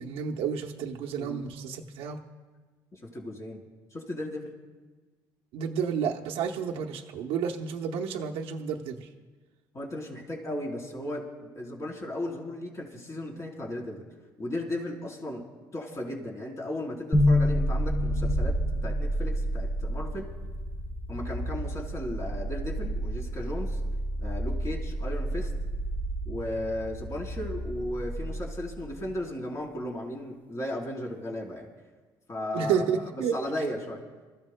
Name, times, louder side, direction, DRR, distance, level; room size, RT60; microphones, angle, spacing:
voice 1, 0.0-2.2 5.5-9.1 32.5-33.4, right 7 dB, 85° right, 0 dB, 0.9 m, -31 dB
voice 2, 2.9-4.5 9.7-11.2 11.6-14.0 14.4-15.4 15.7-18.6 18.8-20.3 21.1-23.8 24.2-25.5 26.3-31.7 32.3-34.0, left 1 dB, 35° left, -1 dB, 3.7 m, -35 dB
sound 1, 17.1-29.2, equal, 20° left, 1.1 m, -29 dB
27.5 x 14.5 x 2.2 m, 1.3 s
supercardioid pair, 75°, 9 cm